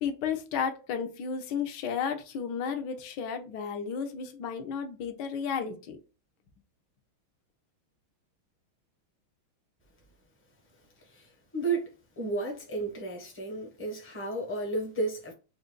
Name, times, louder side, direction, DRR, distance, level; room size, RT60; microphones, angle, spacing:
voice 1, 0.0-6.0, left 7 dB, 65° left, 1.1 m, -33 dB
voice 2, 11.5-11.9 12.2-15.3, right 3 dB, 10° left, 0.7 m, -32 dB
5.0 x 2.5 x 2.2 m
omnidirectional pair, 2.3 m